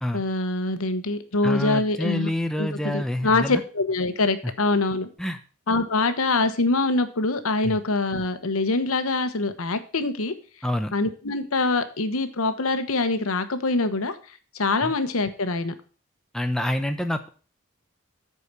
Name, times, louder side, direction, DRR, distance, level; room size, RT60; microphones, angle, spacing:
voice 1, 0.1-2.3 2.6-5.1 5.7-10.3 10.9-14.2 14.5-15.7, left 3 dB, 85° left, 10 dB, 1.0 m, -24 dB
voice 2, 1.4-3.6 5.2-5.4 7.6-7.8 10.6-10.9 14.8-14.9 16.3-17.3, left 1 dB, ahead, 6 dB, 0.6 m, -27 dB
8.4 x 4.8 x 6.8 m, 0.37 s
head